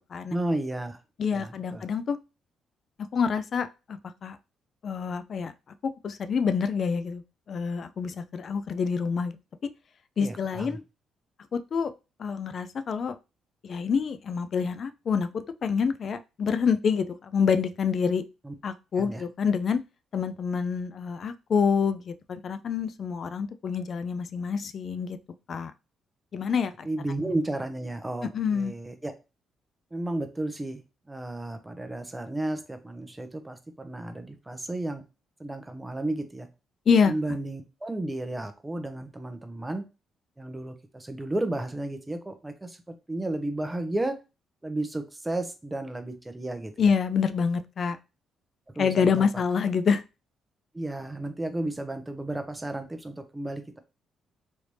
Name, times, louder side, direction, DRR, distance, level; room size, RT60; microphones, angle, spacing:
voice 1, 0.3-1.0 1.3-1.8 10.2-10.8 18.4-18.5 19.0-19.2 26.8-29.1 29.9-30.8 31.1-35.0 35.4-36.5 37.1-39.8 40.4-44.2 44.6-46.9 48.8-49.3 50.7-53.8, right 1 dB, 15° right, 7 dB, 0.6 m, -33 dB
voice 2, 1.2-2.2 3.1-4.4 4.8-5.5 6.0-7.2 7.5-9.4 9.6-9.7 10.2-10.8 11.5-13.2 13.6-18.2 18.6-19.8 20.1-25.2 25.5-25.7 26.3-26.9 27.2-27.3 28.3-28.7 36.9-37.1 46.8-48.0 48.8-50.0, left 6 dB, 50° left, 11 dB, 0.3 m, -27 dB
3.2 x 2.6 x 3.1 m, 0.28 s
cardioid pair, 90°, 0 cm